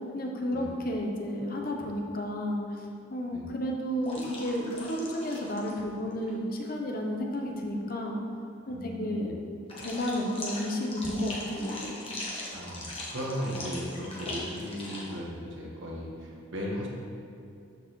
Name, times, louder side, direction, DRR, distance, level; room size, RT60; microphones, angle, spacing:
voice 1, 0.1-2.6 3.1-8.2 8.7-9.4 9.8-11.9, equal, 45° left, 1 dB, 0.8 m, -32 dB
sound 1, 4.0-5.8 6.1-6.3 9.7-15.2, left 2 dB, 25° left, 1.1 m, -40 dB
voice 2, 8.7-9.3 12.5-16.9, equal, 65° right, -3 dB, 1.4 m, -36 dB
12.5 x 4.5 x 3.1 m, 2.6 s
head